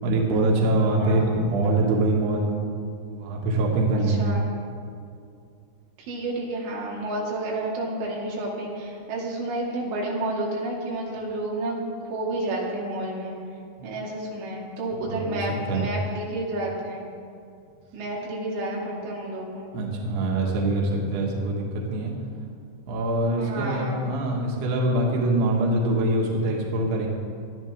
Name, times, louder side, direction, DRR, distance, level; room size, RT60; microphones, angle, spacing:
voice 1, 0.0-2.6 3.1-4.3 15.0-15.4 15.7-15.9 19.7-22.1 22.9-27.1, right 2 dB, 65° right, -2 dB, 3.6 m, -24 dB
voice 2, 1.0-1.4 4.1-4.5 6.1-13.4 13.8-17.0 17.9-19.7 23.4-24.0, right 1 dB, 90° right, -3 dB, 4.9 m, -30 dB
20.5 x 13.0 x 3.6 m, 2.4 s
omnidirectional pair, 5.3 m